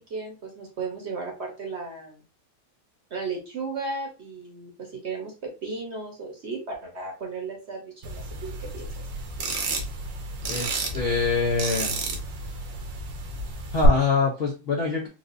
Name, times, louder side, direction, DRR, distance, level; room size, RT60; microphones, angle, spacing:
voice 1, 0.1-2.2 3.1-8.9, right 4 dB, 45° right, 1 dB, 1.0 m, -35 dB
sound 1, 8.0-13.9, right 1 dB, 70° right, 1.5 m, -31 dB
voice 2, 10.5-12.0 13.7-15.1, left 4 dB, 80° left, 0 dB, 0.5 m, -25 dB
4.6 x 2.5 x 2.5 m, 0.31 s
omnidirectional pair, 2.1 m